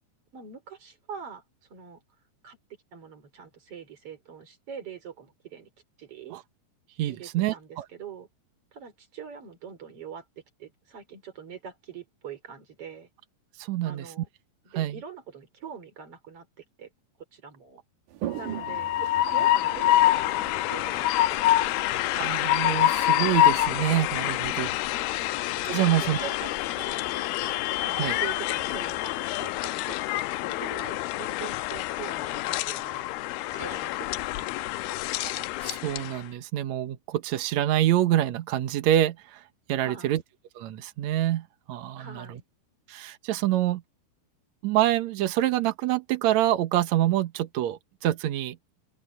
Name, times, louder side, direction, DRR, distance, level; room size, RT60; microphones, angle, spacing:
voice 1, 0.3-1.4 1.7-2.0 2.4-2.6 2.9-5.7 6.0-6.4 7.1-8.3 8.7-10.2 10.6-13.1 13.8-14.3 14.6-16.5 16.8-16.9 17.3-17.8 18.3-21.7 24.9-25.3 25.8-27.2 27.8-30.0 30.3-33.0 33.5-35.4 39.8-40.2 42.0-42.4, right 7 dB, 35° right, 4.4 m, -44 dB
voice 2, 7.0-7.8 13.6-14.1 14.8-15.0 22.1-24.7 25.2-25.3 25.6-26.3 28.0-28.2 35.2-39.4 39.7-40.2 40.5-42.4 42.9-43.8 44.6-48.6, right 13 dB, 85° right, 1.6 m, -26 dB
Toilet flush, 18.1-29.6, right 12 dB, 65° right, 2.5 m, -44 dB
Train, 18.4-36.2, left 14 dB, 85° left, 2.4 m, -26 dB
open air
omnidirectional pair, 4.8 m